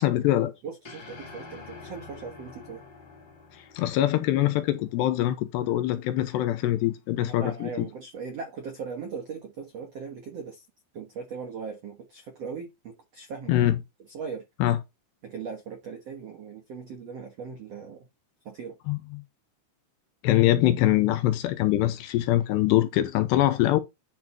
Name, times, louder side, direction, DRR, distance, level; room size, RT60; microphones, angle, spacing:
voice 1, 0.0-0.5 3.8-7.9 13.5-13.8 14.6-14.8 18.9-19.2 20.2-23.8, left 14 dB, 80° left, 2.8 m, -23 dB
voice 2, 0.6-2.8 7.2-10.6 10.9-13.6 14.1-14.4 15.2-18.0 18.4-18.8, right 5 dB, 80° right, 1.4 m, -39 dB
sound 1, 0.8-5.2, left 4 dB, 55° left, 1.2 m, -47 dB
10.5 x 4.0 x 4.4 m
omnidirectional pair, 5.2 m